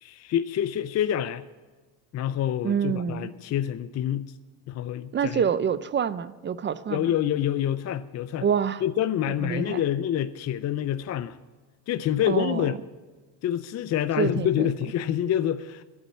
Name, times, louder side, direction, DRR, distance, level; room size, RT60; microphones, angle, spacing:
voice 1, 0.0-1.4 2.1-4.3 4.7-5.5 6.9-8.5 8.8-11.4 11.9-12.8 13.4-15.8, left 10 dB, 35° left, 0.4 m, -27 dB
voice 2, 2.6-3.3 5.1-7.1 8.4-8.8 9.4-9.8 12.3-12.7 14.2-14.7, right 7 dB, 25° right, 0.4 m, -27 dB
11.0 x 8.5 x 8.3 m
cardioid pair, 115°, 46 cm